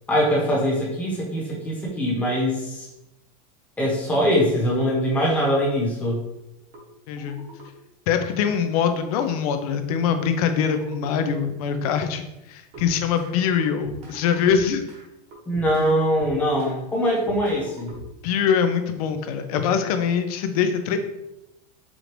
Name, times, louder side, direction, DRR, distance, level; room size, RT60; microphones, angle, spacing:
voice 1, 0.1-2.9 3.8-6.2 15.5-18.0, equal, 5° left, -5 dB, 1.0 m, -22 dB
sound 1, 6.7-6.8 7.2-7.7 8.5-8.6 8.9-9.4 10.2-10.3 10.6-11.1 11.7-12.0 12.7-13.3 13.6-15.0 15.3-16.8 17.0-18.3, right 1 dB, 35° right, 1.0 m, -42 dB
voice 2, 7.1-7.4 8.1-14.8 18.2-21.0, left 7 dB, 65° left, 7 dB, 0.6 m, -23 dB
4.9 x 2.5 x 3.1 m, 0.91 s
supercardioid pair, 160°, 20 cm